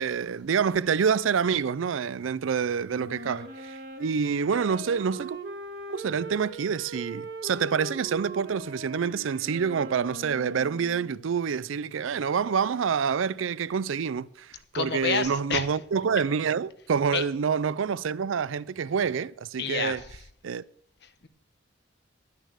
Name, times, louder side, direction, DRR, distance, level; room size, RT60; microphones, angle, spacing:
voice 1, 0.0-5.4 5.9-20.0 20.4-20.6, right 6 dB, 85° right, 0.4 m, -27 dB
Wind instrument woodwind instrument, 2.9-11.3, right 2 dB, 50° right, 1.6 m, -40 dB
voice 2, 14.7-15.7 17.1-17.2 19.6-20.1 21.0-21.3, left 6 dB, 55° left, 0.9 m, -29 dB
11.5 x 9.5 x 6.5 m
head